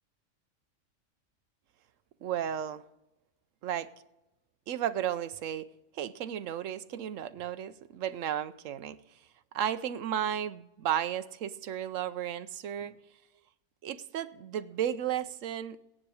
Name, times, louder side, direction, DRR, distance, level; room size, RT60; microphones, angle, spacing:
voice 1, 2.2-2.8 3.6-3.9 4.7-5.7 5.9-9.0 9.5-13.0 13.8-15.8, right 10 dB, 85° right, 14 dB, 1.0 m, -34 dB
17.0 x 9.9 x 4.8 m, 0.96 s
omnidirectional pair, 1.3 m